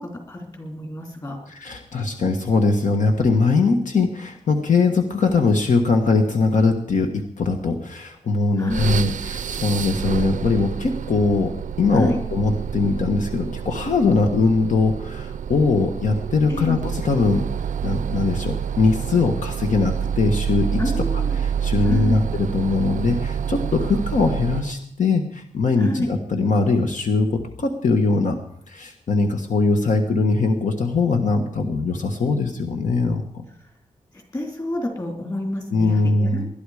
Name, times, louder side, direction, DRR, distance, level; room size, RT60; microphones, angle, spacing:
voice 1, 0.0-1.4 8.6-9.0 11.9-12.2 16.5-16.8 20.8-21.4 21.8-22.2 25.8-26.1 34.1-36.5, left 1 dB, 30° left, 2 dB, 3.3 m, -29 dB
voice 2, 1.5-17.4 17.8-20.8 21.4-28.4 28.7-33.4 35.7-36.5, left 3 dB, 75° left, 4 dB, 1.4 m, -21 dB
sound 1, 8.7-24.8, right 8 dB, 80° right, 0.5 m, -28 dB
20.5 x 11.5 x 4.9 m, 0.71 s
wide cardioid pair, 175°, 13 cm